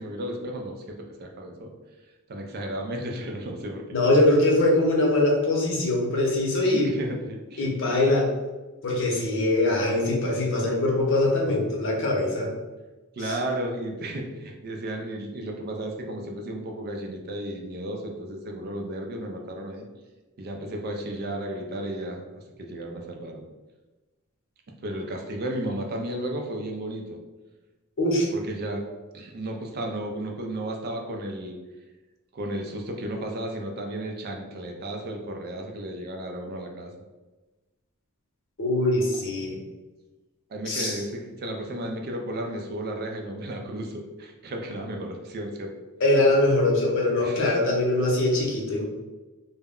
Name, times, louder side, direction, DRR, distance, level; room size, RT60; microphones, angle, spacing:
voice 1, 0.0-1.7 2.3-3.8 6.6-7.7 13.2-19.8 20.4-22.2 22.6-23.4 24.8-27.2 28.3-28.8 29.1-31.6 32.3-36.9 40.5-45.7 47.2-47.6, right 1 dB, 45° right, 2 dB, 0.4 m, -33 dB
voice 2, 3.9-6.9 7.6-8.3 8.8-12.5 13.2-13.4 28.0-28.3 38.6-39.6 40.7-41.0 46.0-48.8, left 2 dB, 60° left, -2 dB, 0.7 m, -22 dB
2.1 x 2.0 x 3.5 m, 1.2 s
head